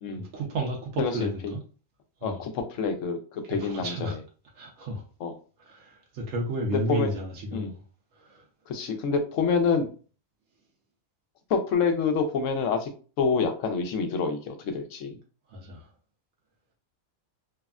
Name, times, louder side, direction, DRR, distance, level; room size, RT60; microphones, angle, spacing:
voice 1, 0.1-1.6 2.2-2.4 3.4-4.2 4.5-5.0 5.6-7.8 8.1-8.4 15.5-15.9, right 1 dB, 75° right, 1.1 m, -33 dB
voice 2, 1.0-1.3 2.2-4.1 5.2-5.3 6.9-7.1 7.5-7.7 8.7-9.9 11.5-12.9 13.2-15.2, left 5 dB, 75° left, 1.0 m, -27 dB
3.4 x 2.1 x 2.4 m
omnidirectional pair, 1.4 m